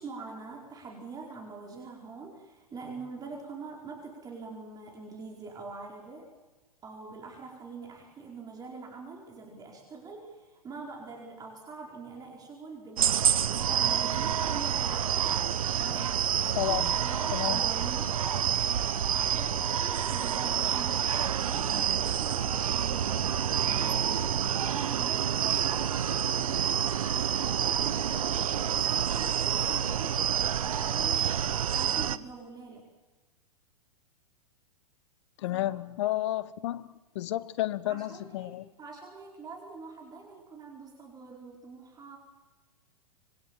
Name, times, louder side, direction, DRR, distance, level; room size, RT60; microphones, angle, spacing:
voice 1, 0.0-6.3 6.8-18.2 18.7-21.0 21.4-25.9 26.4-30.3 30.6-32.8 35.5-35.7 37.9-42.2, right 4 dB, 20° right, 1 dB, 4.7 m, -44 dB
sound 1, 13.0-32.2, right 9 dB, 65° right, 1.0 m, -28 dB
voice 2, 16.6-16.9 17.3-17.6 35.4-36.9 37.1-38.7, left 15 dB, 50° left, 18 dB, 1.0 m, -31 dB
26.0 x 22.5 x 7.4 m, 1.2 s
figure-of-eight pair, 105°, 19 cm